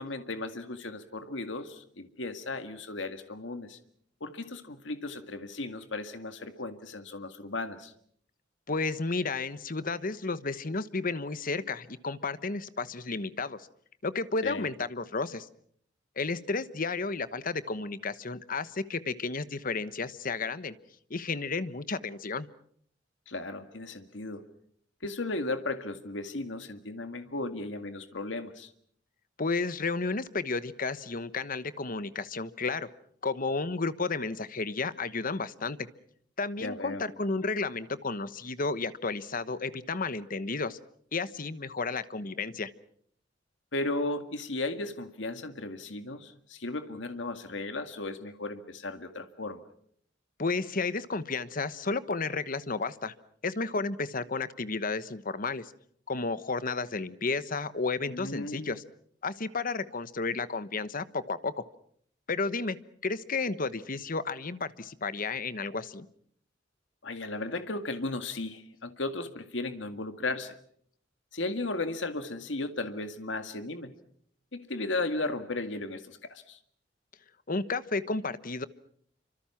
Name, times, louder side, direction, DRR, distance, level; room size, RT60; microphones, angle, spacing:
voice 1, 0.0-3.8 4.2-7.9 14.4-14.7 23.3-24.4 25.0-28.7 36.6-37.0 43.7-49.6 58.1-58.8 67.0-70.5 71.3-73.9 74.5-76.6, left 2 dB, 75° left, 8 dB, 2.0 m, -35 dB
voice 2, 8.7-13.6 14.0-15.5 16.2-20.8 21.1-22.5 29.4-32.9 33.2-35.9 36.4-40.8 41.1-42.7 50.4-53.1 53.4-55.7 56.1-58.8 59.2-61.5 62.3-62.8 63.0-66.1 77.5-78.7, left 3 dB, 50° left, 14 dB, 1.2 m, -32 dB
28.0 x 25.5 x 5.9 m, 0.64 s
head